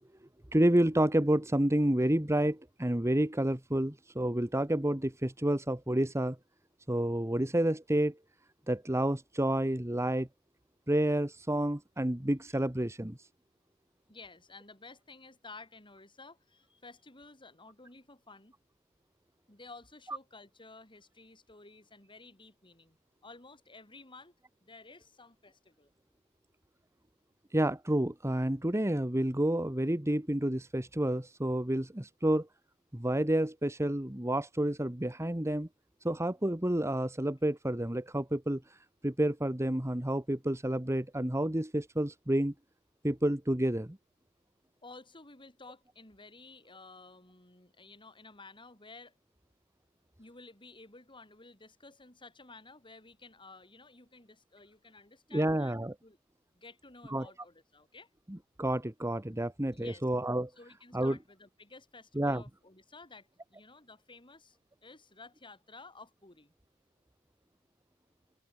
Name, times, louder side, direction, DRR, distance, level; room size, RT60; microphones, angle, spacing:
voice 1, 0.5-6.4 6.9-8.1 8.7-10.3 10.9-13.2 20.1-20.2 27.5-32.5 32.9-35.7 36.0-38.8 39.0-42.5 43.0-44.0 55.3-55.9 57.1-57.3 58.3-60.5 60.9-61.2 62.1-62.4, right 1 dB, 15° right, 1.3 m, -29 dB
voice 2, 14.1-18.5 19.5-23.0 23.2-24.3 24.6-25.9 44.8-49.1 50.2-56.2 56.5-58.1 59.7-60.0 60.6-66.5, left 3 dB, 25° left, 5.5 m, -53 dB
open air
head